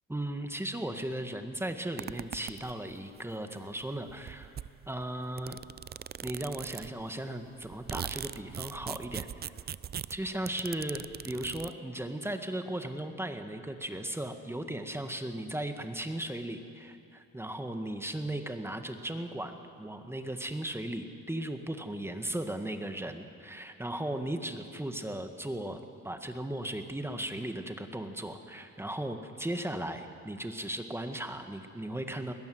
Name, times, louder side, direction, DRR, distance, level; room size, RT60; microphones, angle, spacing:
voice 1, 0.1-4.5 4.9-5.6 6.2-9.5 10.1-32.3, right 1 dB, 10° right, 6 dB, 1.7 m, -37 dB
sound 1, 2.0-3.0 3.8-3.9 4.1-7.1 7.5-11.7, right 9 dB, 35° right, 0.4 m, -41 dB
21.5 x 18.5 x 7.9 m, 2.4 s
cardioid pair, 90°, 30 cm